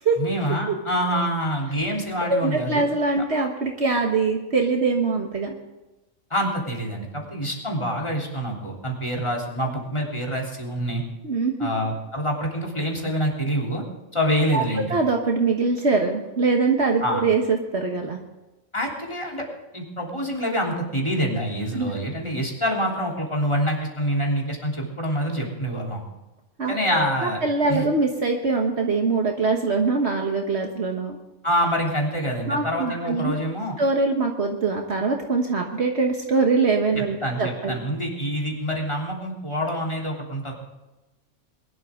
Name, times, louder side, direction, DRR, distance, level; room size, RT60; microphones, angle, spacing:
voice 1, 0.2-2.8 6.3-11.0 11.6-13.8 14.1-14.9 17.0-17.2 18.7-19.4 19.7-26.0 26.7-27.4 27.7-27.8 31.4-33.7 37.0-40.5, equal, 25° left, -2 dB, 3.3 m, -26 dB
voice 2, 2.3-5.5 11.2-11.7 14.5-14.6 14.9-18.2 21.7-21.9 26.6-31.2 32.5-33.3 33.8-37.8, right 4 dB, 60° right, 2 dB, 1.6 m, -23 dB
22.0 x 12.0 x 3.7 m, 1.1 s
omnidirectional pair, 1.3 m